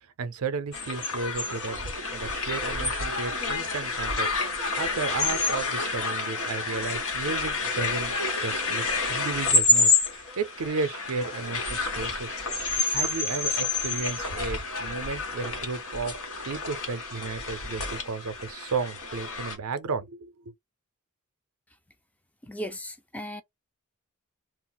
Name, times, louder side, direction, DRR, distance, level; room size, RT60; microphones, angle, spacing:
voice 1, 0.2-1.8 2.1-4.3 4.8-12.4 12.9-16.1 16.5-20.3, right 4 dB, 90° right, 0.5 m, -33 dB
sound 1, 0.7-19.6, left 3 dB, 85° left, 1.2 m, -28 dB
voice 2, 22.4-23.4, equal, 5° left, 0.4 m, -36 dB
2.4 x 2.0 x 3.8 m
head